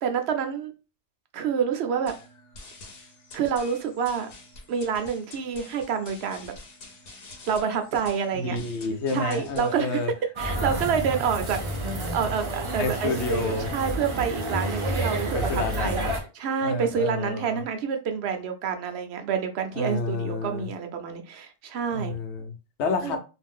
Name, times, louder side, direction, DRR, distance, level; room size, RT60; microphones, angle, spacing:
voice 1, 0.0-0.7 1.3-2.1 3.3-4.3 4.7-6.5 7.5-8.6 9.1-10.0 10.4-11.6 11.9-16.0 16.3-22.1 23.0-23.2, right 7 dB, 75° right, 0.8 m, -28 dB
sound 1, 2.1-10.1, left 2 dB, 60° left, 0.9 m, -47 dB
voice 2, 8.3-10.1 12.8-13.7 15.3-16.1 16.6-17.6 19.7-20.7 21.9-23.2, left 3 dB, 90° left, 0.9 m, -29 dB
sound 2, 10.4-16.2, right 1 dB, 40° right, 0.5 m, -29 dB
2.5 x 2.1 x 3.5 m
omnidirectional pair, 1.1 m